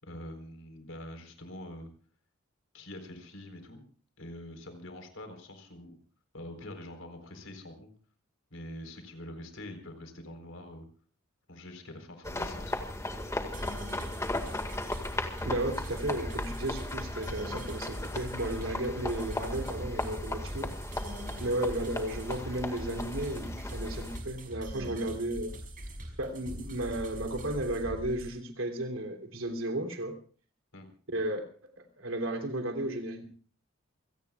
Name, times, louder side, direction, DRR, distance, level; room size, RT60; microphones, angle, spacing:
voice 1, 0.0-1.9 2.7-3.8 4.2-6.0 6.3-7.9 8.5-10.9 11.5-12.9 30.7-30.9, left 1 dB, 80° left, 6 dB, 4.2 m, -45 dB
sound 1, 12.2-24.2, left 1 dB, 15° left, 1.9 m, -37 dB
sound 2, 13.5-28.3, right 1 dB, 45° right, 5.5 m, -42 dB
voice 2, 15.4-20.8 21.4-25.6 26.2-30.2 31.1-31.4 31.8-33.2, right 1 dB, 80° right, 4 dB, 3.2 m, -34 dB
28.0 x 18.0 x 2.4 m, 0.44 s
head